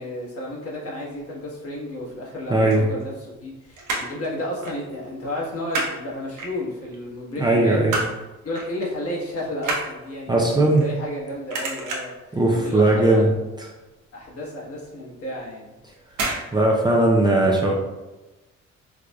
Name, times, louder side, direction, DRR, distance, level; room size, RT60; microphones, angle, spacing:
voice 1, 0.0-3.1 3.4-7.8 8.4-12.1 12.6-13.3 14.1-15.7, left 1 dB, 50° left, -4 dB, 1.3 m, -32 dB
voice 2, 2.5-2.8 7.4-7.9 10.3-10.8 12.3-13.3 13.6-13.7 16.5-17.7, right 2 dB, 15° right, -3 dB, 0.6 m, -18 dB
sound 1, 2.5-3.5 3.7-4.2 4.6-4.8 5.1-6.0 6.4-7.0 7.4-8.2 8.5-8.8 9.1-11.2 11.5-12.2 12.7-13.0 13.3-13.4 13.7-13.8 14.3-14.4 15.2-15.5 16.1-16.5 16.7-16.8, right 3 dB, 80° right, 0.9 m, -29 dB
4.8 x 2.5 x 2.3 m, 1.1 s
cardioid pair, 85°, 30 cm